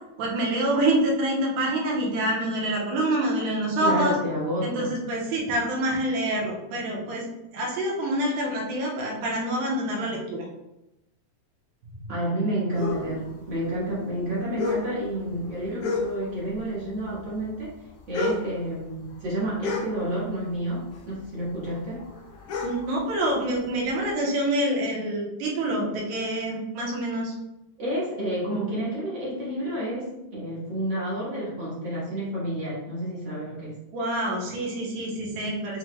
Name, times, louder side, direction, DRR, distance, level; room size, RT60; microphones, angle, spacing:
voice 1, 0.2-4.2 4.6-7.2 7.5-10.4 22.6-27.3 33.9-35.8, right 1 dB, 75° right, -2 dB, 2.3 m, -26 dB
voice 2, 3.8-4.9 12.1-17.7 18.1-22.0 27.8-33.7, right 1 dB, 50° right, -8 dB, 1.7 m, -30 dB
sound 1, 12.7-16.5 16.8-20.6 20.9-24.1, left 3 dB, 85° left, 1.3 m, -32 dB
6.6 x 3.1 x 2.2 m, 0.96 s
omnidirectional pair, 3.5 m